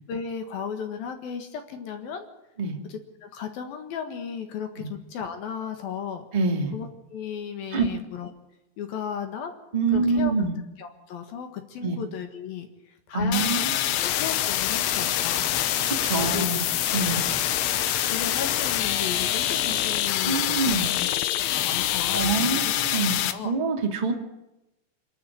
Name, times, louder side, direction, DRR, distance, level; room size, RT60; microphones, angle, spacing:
voice 1, 0.1-2.3 2.9-6.2 6.7-8.3 8.8-9.5 9.9-10.3 10.8-15.7 16.2-16.6 17.1-17.4 18.0-21.1 21.5-22.7 23.2-23.5, left 7 dB, 60° left, 6 dB, 3.0 m, -35 dB
voice 2, 6.3-6.7 7.7-7.9 9.7-10.5 11.8-12.0 13.1-14.0 15.8-16.6 16.9-17.2 20.2-20.9 22.1-23.1 23.4-24.1, right 4 dB, 30° right, 2 dB, 0.8 m, -25 dB
sound 1, 13.3-23.3, left 13 dB, 85° left, 3.4 m, -25 dB
sound 2, 14.8-19.9, right 1 dB, 5° right, 0.4 m, -41 dB
26.0 x 12.5 x 9.9 m, 0.95 s
omnidirectional pair, 5.4 m